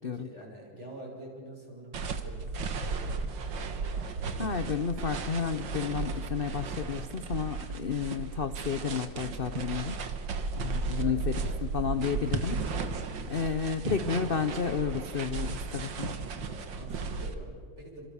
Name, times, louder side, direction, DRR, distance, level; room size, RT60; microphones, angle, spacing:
voice 1, 0.0-4.3 10.5-11.6 13.2-13.5 16.5-18.0, right 1 dB, 30° right, -2 dB, 7.2 m, -47 dB
sound 1, 1.9-17.3, right 4 dB, 65° right, 2.2 m, -35 dB
voice 2, 4.4-10.0 10.5-12.6 13.3-16.2, left 6 dB, 45° left, 10 dB, 0.7 m, -32 dB
28.5 x 26.5 x 7.2 m, 2.2 s
omnidirectional pair, 2.2 m